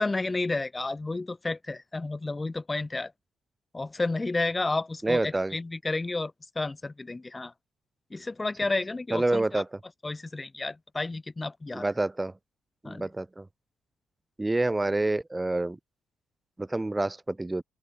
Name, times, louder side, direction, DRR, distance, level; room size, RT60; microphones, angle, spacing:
voice 1, 0.0-3.1 3.7-7.5 8.1-9.6 10.0-11.9 12.8-13.1, left 3 dB, 20° left, 1.9 m, -31 dB
voice 2, 5.0-5.5 9.1-9.7 11.7-12.3 12.8-13.5 14.4-15.8 16.6-17.6, right 2 dB, 15° right, 1.4 m, -27 dB
open air
cardioid pair, 90°, 0 cm